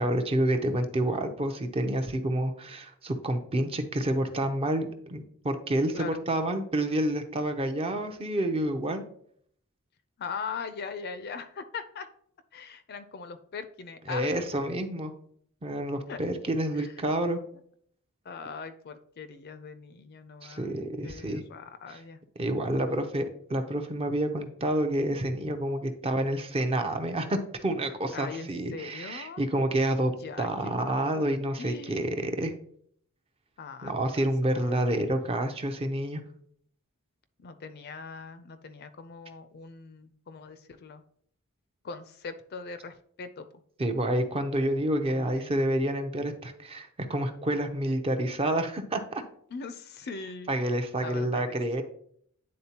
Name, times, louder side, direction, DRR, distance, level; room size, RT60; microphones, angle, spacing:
voice 1, 0.0-9.0 14.1-15.1 15.6-17.4 20.4-21.4 22.4-30.1 30.4-32.5 33.8-36.2 43.8-49.2 50.5-51.8, right 1 dB, 25° right, 7 dB, 0.5 m, -28 dB
voice 2, 10.2-12.1 12.5-14.4 16.1-16.3 16.7-16.9 18.2-20.8 21.0-22.2 28.1-29.4 30.2-30.5 30.8-31.2 31.6-32.0 33.6-34.3 34.6-34.8 37.4-41.0 41.8-43.5 45.1-45.7 49.5-50.5 51.0-51.8, left 5 dB, 45° left, 10 dB, 0.4 m, -41 dB
9.5 x 3.8 x 2.9 m, 0.65 s
head